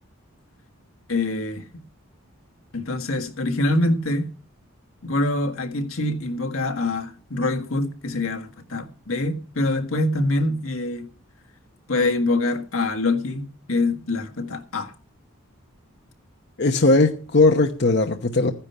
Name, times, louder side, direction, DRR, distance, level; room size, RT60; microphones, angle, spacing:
voice 1, 1.1-1.6 2.7-4.3 5.0-11.1 11.9-14.9, left 2 dB, 75° left, 1.6 m, -25 dB
voice 2, 16.6-18.5, left 2 dB, 50° left, 0.9 m, -18 dB
14.0 x 10.0 x 5.6 m
head